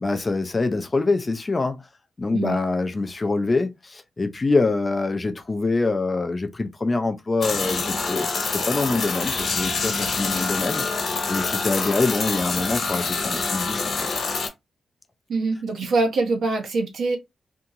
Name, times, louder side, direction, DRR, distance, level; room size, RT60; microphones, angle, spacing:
voice 1, 0.0-1.8 2.2-10.8 11.3-14.2, left 3 dB, 20° left, 0.4 m, -25 dB
sound 1, 7.4-14.5, left 4 dB, 55° left, 1.0 m, -26 dB
voice 2, 15.3-17.2, right 3 dB, 55° right, 0.7 m, -24 dB
2.8 x 2.7 x 2.4 m
wide cardioid pair, 170°, 0 cm